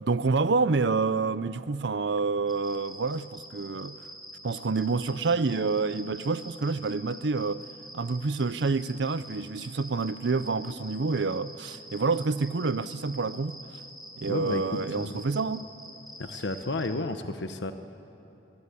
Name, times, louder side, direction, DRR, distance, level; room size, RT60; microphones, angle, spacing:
voice 1, 0.0-4.0 4.4-7.6 7.9-13.6 14.2-15.7, right 4 dB, 70° right, 0.6 m, -28 dB
sound 1, 2.5-16.9, equal, ahead, 3.5 m, -46 dB
voice 2, 14.3-15.2 16.2-17.7, left 2 dB, 75° left, 1.0 m, -32 dB
26.0 x 23.0 x 8.4 m
head